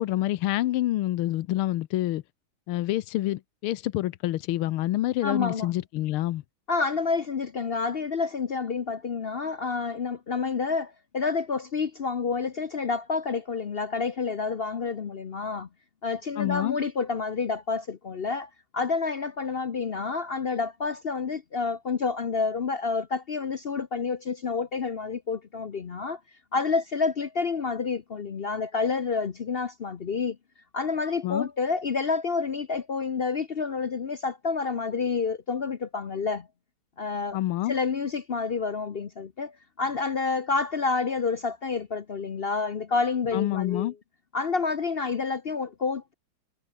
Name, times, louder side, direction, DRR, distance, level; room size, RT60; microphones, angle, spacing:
voice 1, 0.0-2.2 2.7-6.4 16.4-16.8 31.2-31.5 37.3-37.7 43.3-43.9, left 15 dB, 90° left, 1.6 m, -27 dB
voice 2, 5.2-5.7 6.7-15.7 16.0-26.2 26.5-30.4 30.7-36.5 37.0-37.4 37.7-43.9 44.3-46.1, left 4 dB, 65° left, 0.5 m, -29 dB
omnidirectional pair, 2.3 m